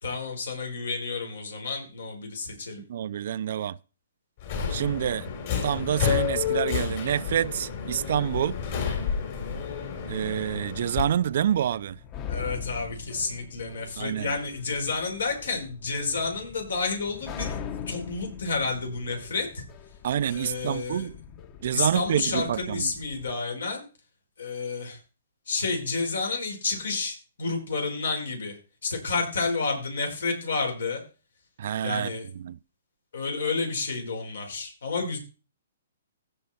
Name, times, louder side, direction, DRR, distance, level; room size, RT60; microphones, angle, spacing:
voice 1, 0.0-2.8 12.3-17.6 17.9-19.6 20.2-21.1 21.7-23.8 24.4-25.0 25.5-31.0 31.8-32.3 33.1-35.2, left 4 dB, 80° left, 4.9 m, -30 dB
voice 2, 2.9-3.8 4.7-5.3 5.6-8.6 10.1-12.0 14.0-14.3 20.0-21.1 21.6-22.9 31.6-32.1 32.4-32.6, right 10 dB, 60° right, 0.5 m, -27 dB
Subway metro underground, 4.4-11.0, left 8 dB, 50° left, 3.5 m, -30 dB
sound 1, 9.6-23.3, left 7 dB, 30° left, 1.1 m, -42 dB
16.5 x 5.5 x 4.3 m
hypercardioid pair, 140°, 0 cm